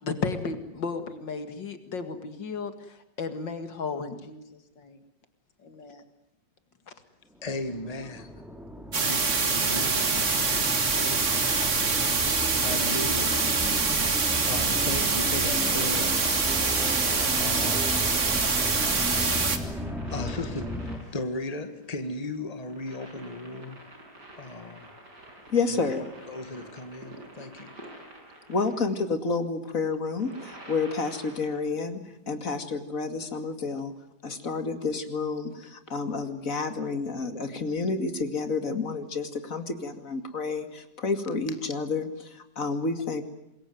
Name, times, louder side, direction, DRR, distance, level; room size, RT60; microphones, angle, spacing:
voice 1, 0.0-5.0 5.6-6.0 12.8-13.0, left 4 dB, 75° left, 2.8 m, -34 dB
voice 2, 7.4-8.3 9.0-11.7 12.2-13.4 14.4-16.3 17.4-17.9 20.1-23.8 24.4-24.9 25.7-27.8, left 2 dB, 20° left, 2.0 m, -36 dB
sound 1, 7.4-21.0, equal, ahead, 2.5 m, -35 dB
sound 2, 8.9-19.6, right 4 dB, 40° right, 2.3 m, -25 dB
sound 3, 17.0-28.9 29.9-31.8 33.4-33.5, right 1 dB, 60° right, 7.0 m, -48 dB
voice 3, 25.5-26.0 28.5-32.0 32.3-33.9 34.2-43.2, left 4 dB, 45° left, 2.7 m, -30 dB
26.5 x 21.5 x 9.4 m
omnidirectional pair, 2.0 m